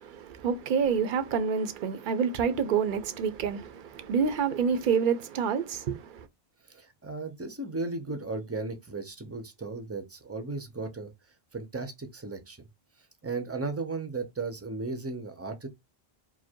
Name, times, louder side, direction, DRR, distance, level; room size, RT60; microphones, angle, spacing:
voice 1, 0.0-6.3, right 6 dB, 60° right, 0.8 m, -28 dB
voice 2, 6.6-11.1 11.5-12.6 13.2-15.7, right 3 dB, 15° right, 0.6 m, -35 dB
4.8 x 2.0 x 4.4 m
omnidirectional pair, 1.0 m